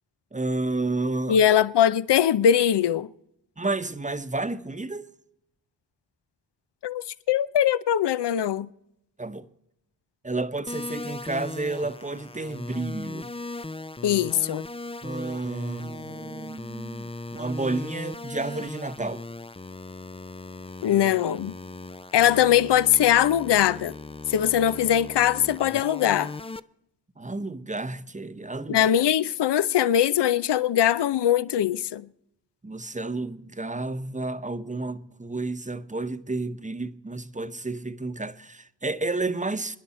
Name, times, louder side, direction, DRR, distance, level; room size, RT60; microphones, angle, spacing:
voice 1, 0.3-1.4 3.6-5.1 9.2-9.5 10.2-13.3 15.0-19.2 27.2-28.9 32.6-39.8, right 2 dB, 15° right, 1.0 m, -31 dB
voice 2, 1.3-3.1 6.8-8.7 14.0-14.6 20.8-21.5 22.1-23.9 24.3-26.3 28.7-32.1, left 10 dB, 65° left, 0.7 m, -21 dB
sound 1, 10.7-26.6, left 3 dB, 15° left, 0.5 m, -38 dB
29.5 x 10.0 x 4.3 m
cardioid pair, 50°, 44 cm